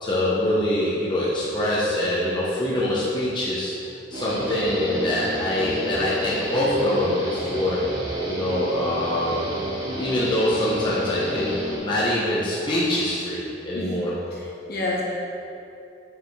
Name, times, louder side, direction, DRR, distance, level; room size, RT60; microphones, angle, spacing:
voice 1, 0.0-3.7 4.1-7.8 8.3-9.5 10.0-14.1, left 1 dB, 25° left, -8 dB, 1.0 m, -24 dB
Guitar, 4.1-11.8, equal, 20° right, 1.7 m, -30 dB
voice 2, 14.3-15.0, left 2 dB, 50° left, -4 dB, 1.3 m, -29 dB
5.7 x 5.0 x 5.9 m, 2.8 s
head